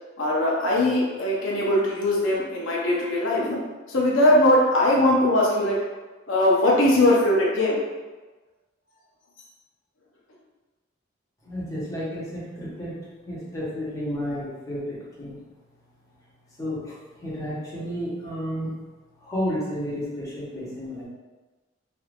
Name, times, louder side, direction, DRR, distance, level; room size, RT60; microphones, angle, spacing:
voice 1, 0.2-3.6 3.9-5.8 6.3-7.8, left 1 dB, 90° left, -4 dB, 0.7 m, -20 dB
voice 2, 11.4-13.0 13.3-15.4 16.6-17.0 17.2-18.7 19.2-21.1, equal, 20° left, -9 dB, 1.0 m, -31 dB
3.3 x 2.8 x 2.5 m, 1.2 s
head